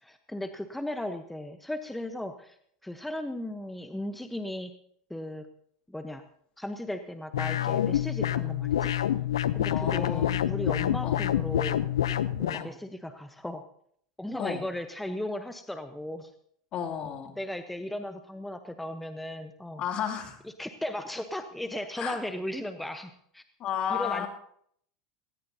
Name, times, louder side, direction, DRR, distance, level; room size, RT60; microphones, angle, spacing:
voice 1, 0.0-2.6 2.8-4.7 5.1-5.5 5.9-6.2 6.6-8.9 9.5-11.8 12.4-13.6 14.2-16.3 17.4-19.8 20.6-23.4 23.9-24.3, left 1 dB, 5° left, 8 dB, 0.9 m, -36 dB
sound 1, 7.3-12.7, left 11 dB, 90° left, 0.6 m, -27 dB
voice 2, 9.7-10.5 11.0-11.2 12.5-12.7 14.4-14.6 16.7-17.3 19.8-20.4 22.0-22.2 23.6-24.3, left 8 dB, 45° left, 4 dB, 2.6 m, -33 dB
18.5 x 18.0 x 2.8 m, 0.66 s
hypercardioid pair, 100°, 2 cm